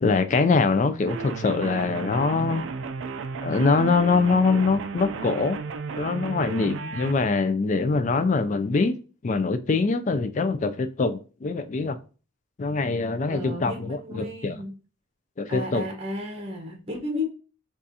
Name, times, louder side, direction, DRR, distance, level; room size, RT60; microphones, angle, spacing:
voice 1, 0.0-2.6 3.4-5.6 5.9-9.0 9.2-12.0 12.6-14.6 15.4-15.8, left 4 dB, 35° left, 0.3 m, -23 dB
sound 1, 1.1-7.1, right 5 dB, 65° right, 0.3 m, -34 dB
voice 2, 6.6-6.9 13.3-14.7 15.5-17.3, left 1 dB, 30° right, 0.9 m, -33 dB
6.5 x 2.4 x 2.7 m
head